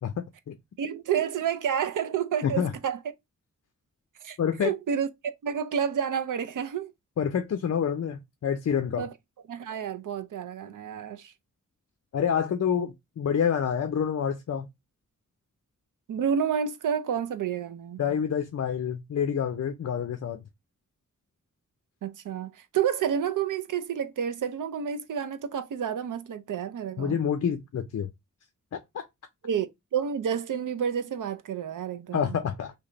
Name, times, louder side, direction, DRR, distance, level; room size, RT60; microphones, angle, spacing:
voice 1, 0.0-0.5 2.4-2.7 4.4-4.7 7.2-9.1 12.1-14.7 18.0-20.4 27.0-28.1 28.7-29.0 32.1-32.7, left 8 dB, 55° left, 0.5 m, -28 dB
voice 2, 0.8-3.0 4.2-5.1 5.4-6.9 9.0-9.1 9.5-11.3 16.1-18.0 22.0-27.2 29.4-32.4, right 8 dB, 90° right, 0.5 m, -30 dB
3.3 x 2.8 x 3.8 m
wide cardioid pair, 145°, 31 cm